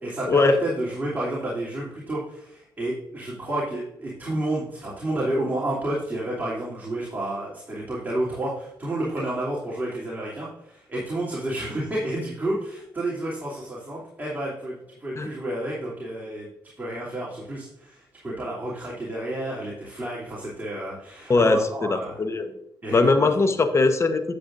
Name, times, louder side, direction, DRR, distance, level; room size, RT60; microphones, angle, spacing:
voice 1, 0.0-16.5 16.8-22.2 22.8-23.5, right 1 dB, 20° right, -5 dB, 2.9 m, -30 dB
voice 2, 21.3-22.5 22.9-24.2, left 3 dB, 35° left, 9 dB, 0.9 m, -20 dB
10.0 x 7.8 x 2.6 m, 0.80 s
cardioid pair, 90°, 8 cm